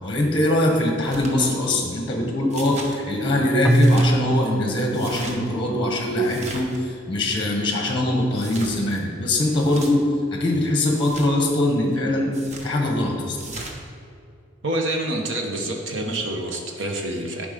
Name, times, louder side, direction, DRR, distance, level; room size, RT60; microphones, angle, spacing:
voice 1, 0.0-6.7 7.1-10.1 10.3-12.3 12.6-13.4, left 1 dB, 25° left, 1 dB, 1.2 m, -22 dB
sound 1, 1.0-1.3 2.5-2.9 3.6-4.1 4.9-5.4 6.2-6.8 8.3-8.8 9.5-9.9 10.9-11.3 12.3-12.7 13.4-13.8, right 2 dB, 35° right, 1.0 m, -37 dB
Keyboard (musical), 3.6-6.6, right 1 dB, ahead, 0.3 m, -23 dB
voice 2, 14.6-17.5, right 1 dB, 75° right, 2 dB, 1.2 m, -27 dB
11.0 x 5.3 x 5.2 m, 2.4 s
head